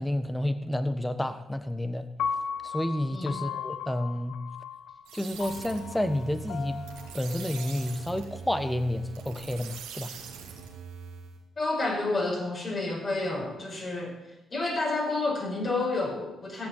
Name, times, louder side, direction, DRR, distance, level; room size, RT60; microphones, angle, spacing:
voice 1, 0.0-2.1 2.6-4.4 5.1-6.8 7.1-10.1, left 1 dB, 10° left, 11 dB, 1.3 m, -30 dB
Piano, 2.2-8.4, left 6 dB, 75° left, 0.6 m, -37 dB
sound 1, 5.0-11.4, right 6 dB, 85° right, 2.3 m, -43 dB
voice 2, 11.6-14.1 14.5-16.7, left 2 dB, 45° left, -1 dB, 5.6 m, -29 dB
15.0 x 7.9 x 7.4 m, 0.99 s
supercardioid pair, 55°, 0 cm